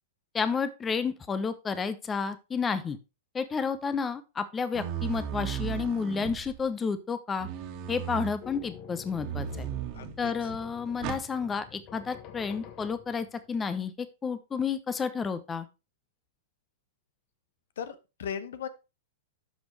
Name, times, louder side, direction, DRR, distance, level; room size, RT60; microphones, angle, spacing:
voice 1, 0.3-3.0 3.3-7.5 7.9-9.7 10.2-15.7, left 5 dB, 20° left, 13 dB, 0.8 m, -31 dB
sound 1, 4.7-6.7 7.4-8.4 9.2-10.2 11.0-11.3, right 10 dB, 45° right, 1.7 m, -35 dB
hinge slow motion, 8.4-13.5, left 9 dB, 40° left, 1.2 m, -48 dB
voice 2, 9.9-10.6 17.8-18.7, left 8 dB, 70° left, 13 dB, 1.0 m, -38 dB
11.0 x 6.2 x 3.4 m, 0.28 s
hypercardioid pair, 105°, 0 cm